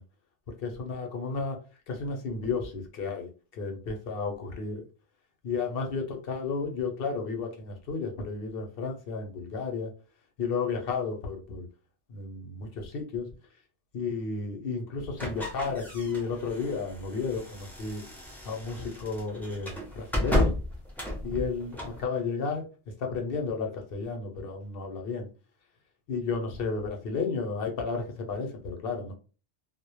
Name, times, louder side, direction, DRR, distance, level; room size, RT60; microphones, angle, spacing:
voice 1, 0.6-1.6 1.9-4.8 5.4-9.9 10.4-11.7 12.1-13.3 13.9-18.0 18.4-20.6 21.2-22.6 23.0-25.3 26.1-29.1, left 4 dB, 60° left, 3 dB, 0.7 m, -32 dB
sound 1, 15.2-22.0, left 1 dB, 5° left, 0.3 m, -33 dB
2.1 x 2.0 x 2.9 m, 0.35 s
omnidirectional pair, 1.2 m